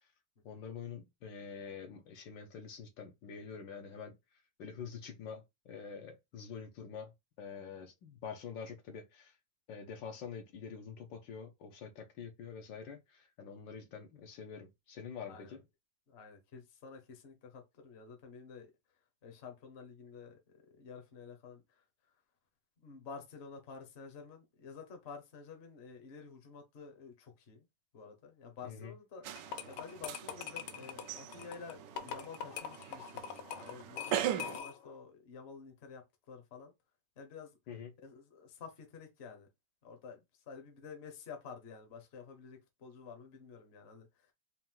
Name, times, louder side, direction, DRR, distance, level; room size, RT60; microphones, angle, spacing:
voice 1, 0.4-4.1 4.6-7.1 7.4-9.4 9.7-15.6 28.6-28.9 37.7-37.9, left 6 dB, 70° left, 1.4 m, -46 dB
voice 2, 15.3-15.6 16.1-18.7 19.2-21.8 22.8-27.7 27.9-29.3 29.6-36.7 37.2-37.6 38.0-39.5 39.8-44.3, left 5 dB, 40° left, 1.0 m, -50 dB
sound 1, 29.2-34.6, right 10 dB, 75° right, 1.1 m, -40 dB
sound 2, 29.4-34.9, left 8 dB, 85° left, 1.5 m, -43 dB
4.4 x 2.5 x 3.8 m
omnidirectional pair, 2.2 m